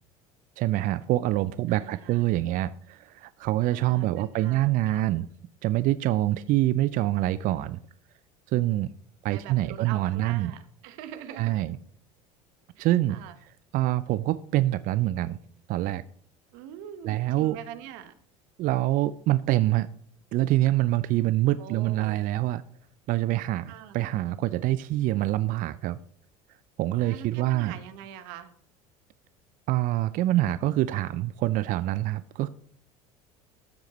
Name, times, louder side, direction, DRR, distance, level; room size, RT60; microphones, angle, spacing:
voice 1, 0.6-5.3 5.6-7.8 8.5-8.9 9.2-10.5 11.4-11.8 12.8-15.4 15.7-16.0 17.0-17.6 18.6-19.9 20.3-22.6 23.1-26.0 26.8-27.7 29.7-32.5, right 15 dB, 50° right, 16 dB, 0.5 m, -25 dB
voice 2, 1.7-2.2 3.7-5.0 9.3-11.6 12.8-13.3 16.5-18.1 21.6-22.2 23.7-24.0 27.0-28.5, right 10 dB, 65° right, 11 dB, 1.3 m, -43 dB
13.5 x 8.2 x 3.2 m, 0.62 s
hypercardioid pair, 75°, 18 cm